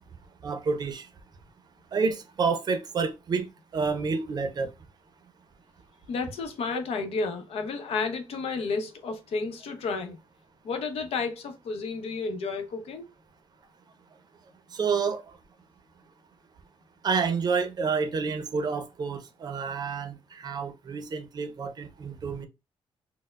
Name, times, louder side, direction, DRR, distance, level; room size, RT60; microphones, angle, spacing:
voice 1, 0.4-1.1 1.9-4.7 14.7-15.2 17.0-22.5, right 5 dB, 45° right, 0.5 m, -29 dB
voice 2, 6.1-10.2 10.6-13.0, left 4 dB, 80° left, 0.7 m, -31 dB
4.3 x 2.0 x 2.3 m
wide cardioid pair, 155°, 10 cm